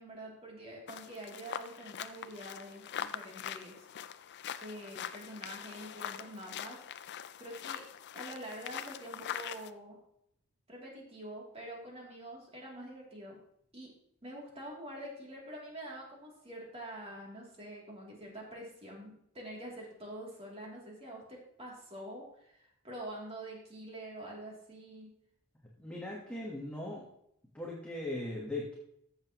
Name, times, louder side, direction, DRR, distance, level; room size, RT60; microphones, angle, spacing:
voice 1, 0.0-3.8 4.6-6.8 7.4-7.8 8.1-10.0 10.7-13.4 13.7-13.9 14.2-25.1, right 1 dB, 30° right, -2 dB, 2.9 m, -46 dB
sound 1, 0.9-9.7, left 9 dB, 50° left, 0.4 m, -43 dB
voice 2, 25.8-27.0 27.5-28.8, left 1 dB, 5° left, -3 dB, 1.3 m, -39 dB
14.5 x 7.1 x 3.0 m, 0.73 s
head